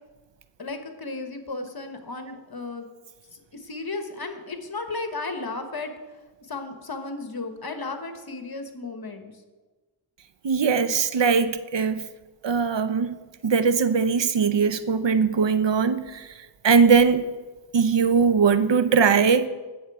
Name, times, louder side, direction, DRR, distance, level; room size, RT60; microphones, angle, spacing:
voice 1, 0.6-2.9 3.3-9.3, left 3 dB, 50° left, 6 dB, 1.2 m, -34 dB
voice 2, 10.4-12.0 12.4-13.2 13.4-16.0 16.6-17.3 17.7-19.4, right 5 dB, 65° right, 12 dB, 0.7 m, -20 dB
17.0 x 7.0 x 4.8 m, 1.3 s
wide cardioid pair, 55°, 47 cm